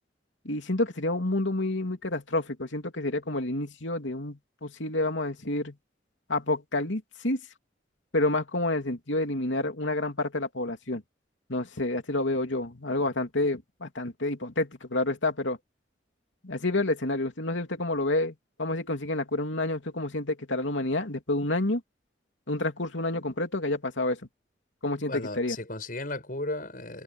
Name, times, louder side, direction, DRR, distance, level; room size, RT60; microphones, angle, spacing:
voice 1, 0.4-5.7 6.3-7.4 8.1-11.0 11.5-15.6 16.4-21.8 22.5-24.2 24.8-25.6, left 2 dB, 90° left, 3.0 m, -29 dB
voice 2, 25.1-27.0, left 2 dB, 50° left, 7.0 m, -35 dB
head